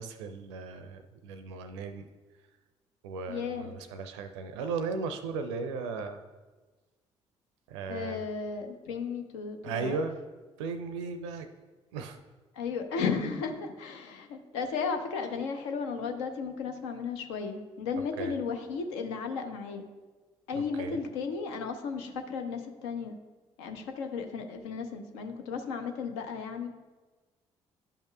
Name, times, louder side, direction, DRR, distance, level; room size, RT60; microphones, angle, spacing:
voice 1, 0.0-2.1 3.0-6.2 7.7-8.2 9.6-10.2 10.6-11.5 11.9-12.2 18.2-18.3 20.6-21.0, right 4 dB, 75° right, 8 dB, 0.4 m, -36 dB
voice 2, 3.3-3.7 7.9-10.0 12.5-19.8 20.5-23.2 23.6-26.7, left 5 dB, 70° left, 5 dB, 0.7 m, -34 dB
11.5 x 5.5 x 2.3 m, 1.3 s
figure-of-eight pair, 40°, 15 cm